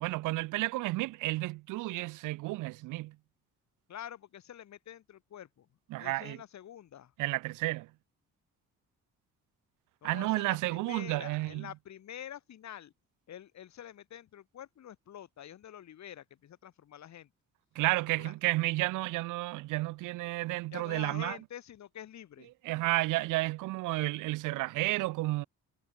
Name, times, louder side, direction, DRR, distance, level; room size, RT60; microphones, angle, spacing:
voice 1, 0.0-3.2 5.9-6.4 7.2-7.9 10.0-11.7 17.7-21.4 22.6-25.5, right 19 dB, 85° right, 0.5 m, -31 dB
voice 2, 3.9-5.7 6.0-7.1 10.0-12.9 13.3-17.3 18.1-18.3 20.7-22.5, left 10 dB, 65° left, 3.4 m, -47 dB
cardioid pair, 90°, 30 cm